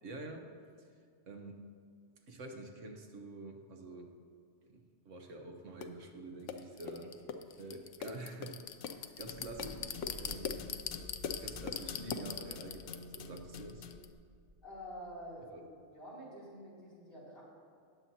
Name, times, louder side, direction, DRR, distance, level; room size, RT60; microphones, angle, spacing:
voice 1, 0.0-0.5 1.3-1.6 2.3-4.1 4.7-7.1 7.6-8.6 8.8-10.6 11.4-13.9 15.5-15.6, right 2 dB, 90° right, 3 dB, 1.4 m, -47 dB
sound 1, 5.8-5.9 6.5-14.1, left 7 dB, 85° left, 1.0 m, -41 dB
sound 2, 9.4-15.2, equal, 60° right, 1.6 m, -54 dB
voice 2, 14.6-17.4, equal, 50° left, -8 dB, 3.4 m, -48 dB
18.5 x 7.5 x 2.8 m, 2.3 s
omnidirectional pair, 1.2 m